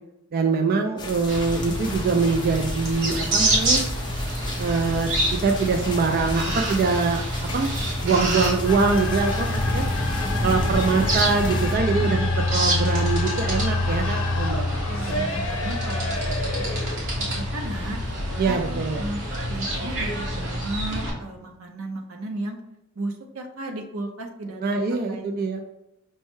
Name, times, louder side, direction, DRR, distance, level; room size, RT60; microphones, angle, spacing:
voice 1, 0.3-3.8 4.6-7.7 8.0-9.8 10.4-14.7 15.1-15.3 18.4-19.1 24.6-25.6, right 4 dB, 45° right, 4 dB, 0.3 m, -24 dB
sound 1, 1.0-11.8, left 1 dB, 20° left, 0.5 m, -33 dB
sound 2, 1.3-21.1, equal, 65° right, 1.1 m, -27 dB
sound 3, 8.7-19.6, left 3 dB, 70° left, 0.6 m, -33 dB
voice 2, 11.9-12.6 14.9-16.8 17.2-18.1 18.4-19.2 19.5-22.6 23.0-24.8 25.1-25.3, right 2 dB, 85° right, 4 dB, 0.7 m, -34 dB
5.4 x 2.1 x 3.1 m, 0.90 s
head